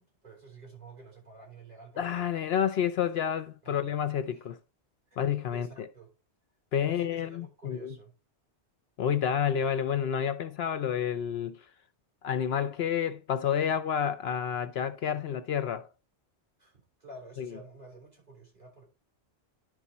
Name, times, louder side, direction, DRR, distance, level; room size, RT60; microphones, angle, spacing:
voice 1, 0.0-2.3 3.6-3.9 4.3-4.5 5.1-5.2 5.5-6.1 6.8-8.1 16.6-18.9, right 3 dB, 35° right, 3.8 m, -50 dB
voice 2, 2.0-4.6 5.2-5.9 6.7-7.9 9.0-11.6 12.2-15.9 17.4-17.5, left 8 dB, 70° left, 0.8 m, -29 dB
10.5 x 4.9 x 4.1 m
omnidirectional pair, 1.2 m